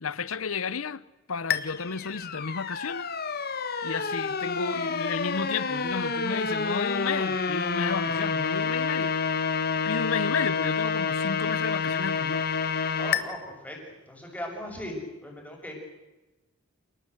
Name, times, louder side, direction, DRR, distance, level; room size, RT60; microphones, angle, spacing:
voice 1, 0.0-1.0 1.3-3.1 3.8-9.1 9.9-12.5, left 5 dB, 80° left, 0.9 m, -32 dB
sound 1, 1.5-13.2, left 5 dB, 45° left, 1.4 m, -28 dB
voice 2, 13.0-13.8 14.1-15.0 15.2-15.7, equal, 5° left, 6.6 m, -38 dB
28.0 x 19.0 x 8.1 m
head